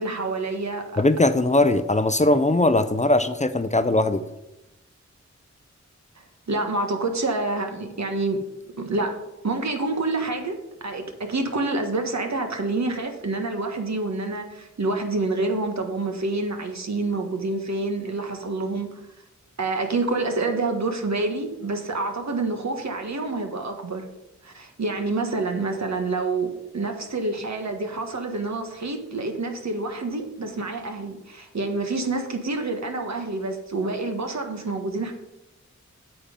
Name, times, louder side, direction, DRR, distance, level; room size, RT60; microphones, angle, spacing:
voice 1, 0.0-1.0 6.2-8.4 8.8-19.0 19.6-24.0 24.4-35.1, right 3 dB, 65° right, 4 dB, 1.5 m, -27 dB
voice 2, 1.0-4.2, left 2 dB, 25° left, 11 dB, 0.6 m, -20 dB
8.5 x 7.6 x 5.3 m, 0.94 s
wide cardioid pair, 60°, 29 cm